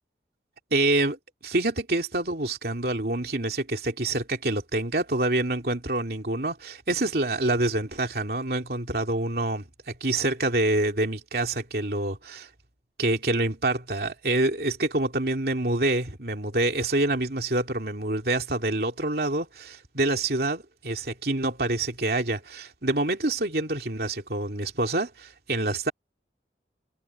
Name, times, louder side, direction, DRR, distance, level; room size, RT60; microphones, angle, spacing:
voice 1, 0.7-1.2 1.4-12.5 13.0-25.9, right 2 dB, 60° right, 2.8 m, -26 dB
head